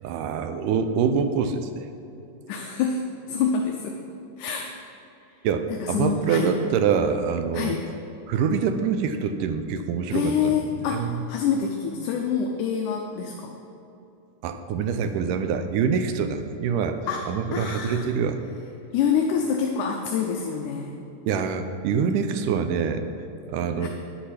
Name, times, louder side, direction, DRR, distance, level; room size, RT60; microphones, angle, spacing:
voice 1, 0.0-1.7 5.4-7.8 8.3-10.5 10.9-11.2 14.4-17.0 17.3-18.4 21.3-23.0 23.5-23.9, right 6 dB, 90° right, 8 dB, 2.2 m, -25 dB
voice 2, 2.5-4.0 4.4-4.7 5.8-6.5 7.5-7.8 10.1-13.5 17.1-18.1 18.9-20.9 23.8-23.9, left 6 dB, 80° left, 2 dB, 2.2 m, -26 dB
10.0 x 8.4 x 5.8 m, 2.8 s
omnidirectional pair, 3.7 m